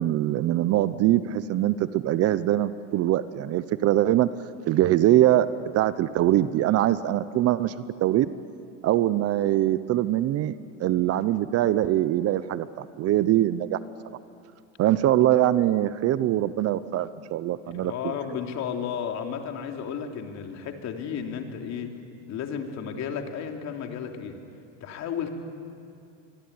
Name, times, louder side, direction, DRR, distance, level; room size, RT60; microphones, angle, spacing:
voice 1, 0.0-4.3 4.7-5.5 5.7-7.7 8.0-8.3 8.8-10.5 10.8-13.8 14.8-18.2, right 13 dB, 40° right, 15 dB, 0.8 m, -23 dB
voice 2, 17.6-21.9 22.3-24.4 24.8-25.3, left 7 dB, 45° left, 4 dB, 3.3 m, -33 dB
25.5 x 22.5 x 9.7 m, 2.5 s
supercardioid pair, 120°, 38 cm